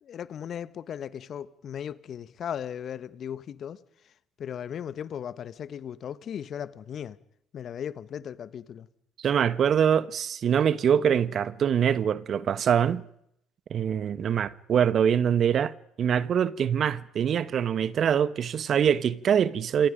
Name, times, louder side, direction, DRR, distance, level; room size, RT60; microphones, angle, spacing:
voice 1, 0.0-4.1 4.4-7.2 7.5-8.9, left 9 dB, 50° left, 1.3 m, -37 dB
voice 2, 9.2-13.0 13.7-15.7 16.0-19.9, right 8 dB, 50° right, 1.2 m, -24 dB
28.0 x 25.0 x 5.2 m
hypercardioid pair, 65°, 0 cm